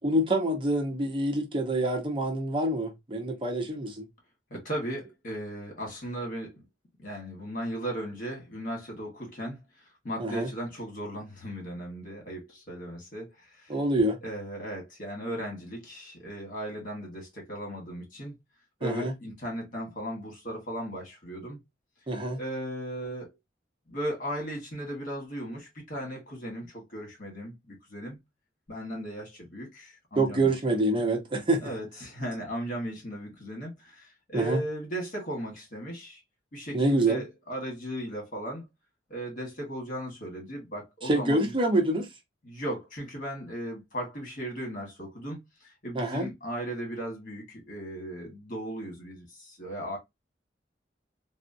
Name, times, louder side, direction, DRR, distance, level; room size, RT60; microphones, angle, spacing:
voice 1, 0.0-4.1 10.2-10.5 13.7-14.2 18.8-19.1 22.1-22.4 30.2-31.7 34.3-34.6 36.7-37.2 41.0-42.1 45.9-46.3, right 1 dB, 30° right, 0.7 m, -26 dB
voice 2, 4.5-6.5 7.0-13.7 14.2-18.3 18.8-21.6 22.4-23.3 23.9-28.2 28.7-30.5 30.9-31.0 31.6-36.2 36.5-38.6 39.1-41.5 42.4-50.0, right 1 dB, 50° left, 1.4 m, -37 dB
3.5 x 2.0 x 2.6 m
head